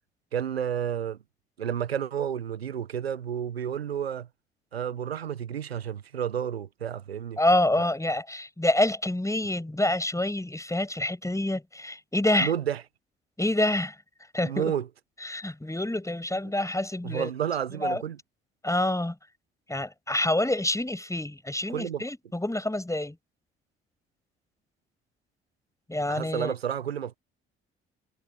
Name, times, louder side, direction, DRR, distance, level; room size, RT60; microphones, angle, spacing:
voice 1, 0.3-1.2 1.6-4.3 4.7-7.4 7.8-7.9 12.4-12.8 14.4-14.9 17.0-18.2 21.7-22.0 26.1-27.2, right 9 dB, 90° right, 1.2 m, -31 dB
voice 2, 7.4-12.5 13.4-14.0 14.3-14.7 15.2-17.3 17.7-18.0 18.6-19.2 19.7-23.2 25.9-26.5, left 1 dB, 10° left, 6.7 m, -27 dB
figure-of-eight pair, 45°, 30 cm